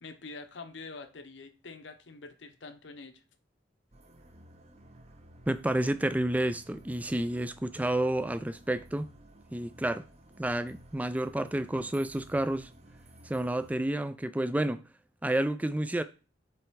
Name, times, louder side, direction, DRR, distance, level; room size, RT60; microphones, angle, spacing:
voice 1, 0.0-3.2, left 3 dB, 70° left, 0.8 m, -45 dB
sound 1, 3.9-13.8, right 1 dB, 35° right, 0.8 m, -55 dB
voice 2, 5.5-9.1 9.5-10.0 10.4-12.7 13.2-14.8 15.2-16.0, right 1 dB, 10° right, 0.4 m, -30 dB
7.6 x 3.3 x 4.6 m
head